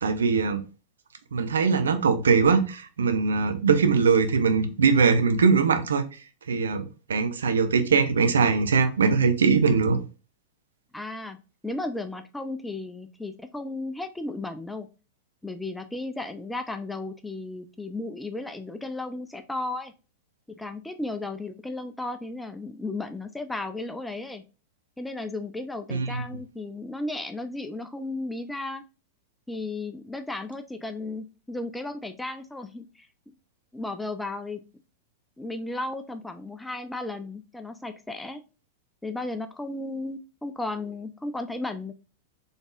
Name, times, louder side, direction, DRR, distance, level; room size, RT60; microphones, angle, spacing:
voice 1, 0.0-0.6 1.3-6.2 6.5-10.0 25.9-26.2, right 5 dB, 75° right, 0.6 m, -21 dB
voice 2, 10.9-11.4 11.6-14.9 15.4-19.9 20.6-24.4 25.0-28.8 29.5-33.1 33.7-34.6 35.4-38.4 39.0-41.9, left 2 dB, 5° left, 0.4 m, -34 dB
4.0 x 3.4 x 2.4 m
figure-of-eight pair, 95°, 0 cm